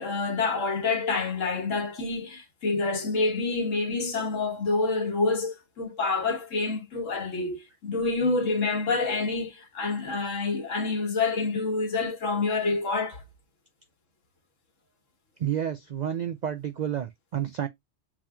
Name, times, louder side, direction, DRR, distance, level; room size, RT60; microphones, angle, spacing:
voice 1, 0.0-13.2, left 3 dB, 90° left, 1.6 m, -27 dB
voice 2, 15.4-17.7, right 10 dB, 75° right, 0.4 m, -30 dB
7.1 x 2.9 x 2.3 m
omnidirectional pair, 1.3 m